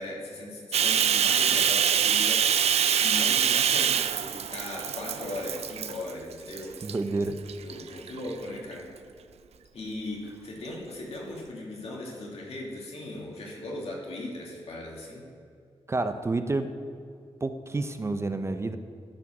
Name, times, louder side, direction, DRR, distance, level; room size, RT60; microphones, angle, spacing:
voice 1, 0.0-2.6 2.9-6.8 7.6-8.9 9.7-15.2, left 1 dB, 75° left, -3 dB, 2.2 m, -38 dB
Bathtub (filling or washing), 0.7-6.1 6.5-6.9 7.5-8.3, right 8 dB, 85° right, 0.4 m, -25 dB
voice 2, 6.8-7.4 15.9-16.7 17.4-18.8, right 3 dB, 25° right, 9 dB, 0.5 m, -29 dB
12.0 x 4.9 x 6.0 m, 2.4 s
wide cardioid pair, 130°, 10 cm